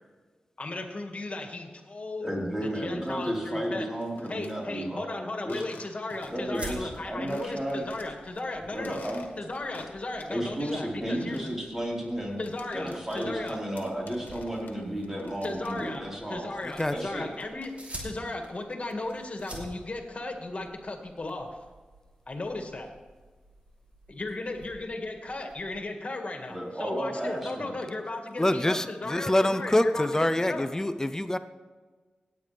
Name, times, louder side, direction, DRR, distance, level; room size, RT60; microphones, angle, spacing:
voice 1, 0.6-2.3 2.6-3.9 4.3-9.0 9.4-11.4 12.4-13.6 15.4-16.0 16.3-17.7 18.0-21.5 22.3-23.0 24.1-30.7, left 2 dB, 45° left, 3 dB, 2.0 m, -36 dB
voice 2, 2.2-5.1 5.4-5.6 6.3-7.9 8.7-9.2 10.3-12.4 12.7-16.5 16.9-17.3 26.5-27.7, right 1 dB, 15° right, -4 dB, 4.4 m, -33 dB
sound 1, 3.8-4.5 5.4-6.5 6.8-6.9 7.3-8.4 8.7-10.4 10.7-16.2 16.4-18.0, left 4 dB, 85° left, 1.3 m, -50 dB
sound 2, 6.2-25.8, right 1 dB, 45° right, 3.4 m, -49 dB
voice 3, 16.6-16.9 28.4-31.4, left 1 dB, 20° left, 11 dB, 0.6 m, -25 dB
17.5 x 9.2 x 3.4 m, 1.4 s
cardioid pair, 45°, 3 cm